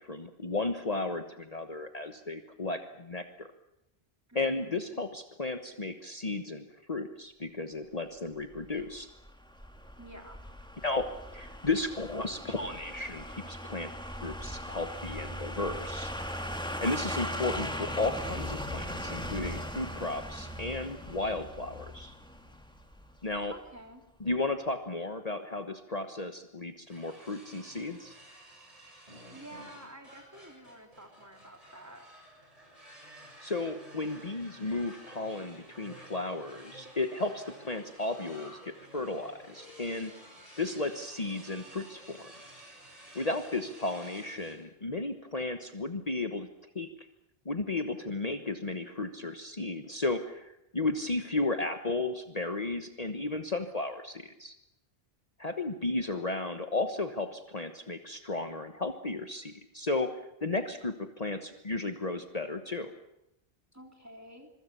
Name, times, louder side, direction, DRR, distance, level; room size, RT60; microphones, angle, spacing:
voice 1, 0.0-3.5 4.3-9.1 10.8-13.9 14.2-16.1 16.8-22.1 23.2-23.5 24.2-28.1 33.4-40.1 40.6-42.3 43.1-46.5 46.7-46.9 47.4-54.6 55.4-60.1 60.4-62.9, left 2 dB, 35° left, 7 dB, 1.3 m, -34 dB
voice 2, 4.3-5.0 10.0-10.4 23.5-24.0 29.3-32.1 63.7-64.5, right 1 dB, 15° right, 3 dB, 3.4 m, -50 dB
sound 1, 8.5-23.5 23.8-23.9, equal, 5° left, 2.3 m, -39 dB
sound 2, 26.9-44.5, right 1 dB, 35° right, 7.9 m, -52 dB
26.0 x 23.5 x 6.9 m, 0.84 s
omnidirectional pair, 1.1 m